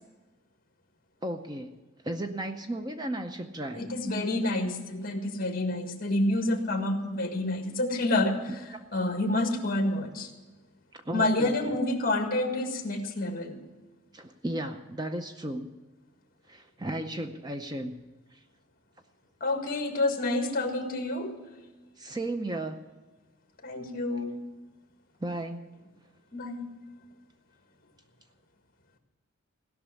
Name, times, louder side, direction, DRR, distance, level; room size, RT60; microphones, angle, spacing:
voice 1, 1.2-1.8 2.0-3.9 10.9-11.8 14.1-15.7 16.5-18.0 22.0-22.8 25.2-25.7, right 1 dB, 20° right, 6 dB, 0.6 m, -34 dB
voice 2, 3.8-8.6 8.9-10.3 11.1-13.6 19.4-21.3 23.6-24.4 26.3-26.7, left 2 dB, 45° left, 5 dB, 1.7 m, -28 dB
16.5 x 6.1 x 9.9 m, 1.2 s
head